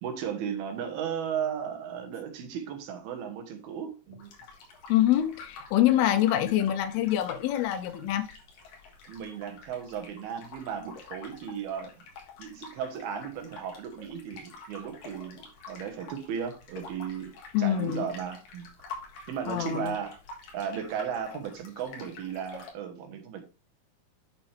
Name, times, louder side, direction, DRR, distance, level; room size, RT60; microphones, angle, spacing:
voice 1, 0.0-4.3 9.1-12.0 12.4-18.7 19.3-20.2 20.5-23.4, right 8 dB, 75° right, 3.2 m, -35 dB
sound 1, 4.2-22.7, left 4 dB, 65° left, 3.4 m, -48 dB
voice 2, 4.9-8.3 17.5-18.1 19.5-19.9, left 12 dB, 85° left, 2.7 m, -25 dB
8.9 x 6.0 x 3.4 m
omnidirectional pair, 4.4 m